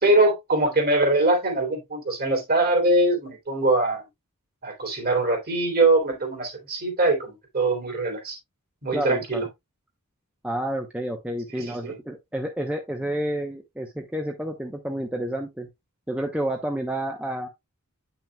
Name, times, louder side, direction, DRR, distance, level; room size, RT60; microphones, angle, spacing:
voice 1, 0.0-4.0 4.6-8.4 8.8-9.5 11.5-12.0, right 2 dB, 45° right, 2.9 m, -22 dB
voice 2, 8.9-9.4 10.4-15.7 16.1-17.5, right 1 dB, 5° right, 0.8 m, -30 dB
8.8 x 5.9 x 2.2 m
head